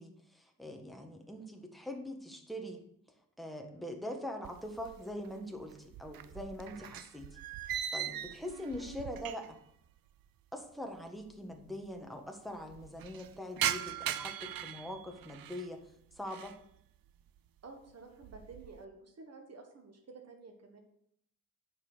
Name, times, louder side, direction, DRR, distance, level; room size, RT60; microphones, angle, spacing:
voice 1, 0.0-2.8 3.4-7.3 7.9-9.6 10.5-15.8 16.1-16.5, left 1 dB, ahead, 3 dB, 1.4 m, -43 dB
sound 1, 4.4-5.3 5.6-9.7 10.0-10.1 10.9-11.0 11.2-11.3 11.6-12.1 12.5-15.7 16.1-16.6 17.1-17.5 17.9-18.8, right 10 dB, 90° right, 0.6 m, -40 dB
voice 2, 17.6-20.8, right 3 dB, 45° right, 4 dB, 1.4 m, -52 dB
9.4 x 5.4 x 6.2 m, 0.72 s
wide cardioid pair, 105°, 34 cm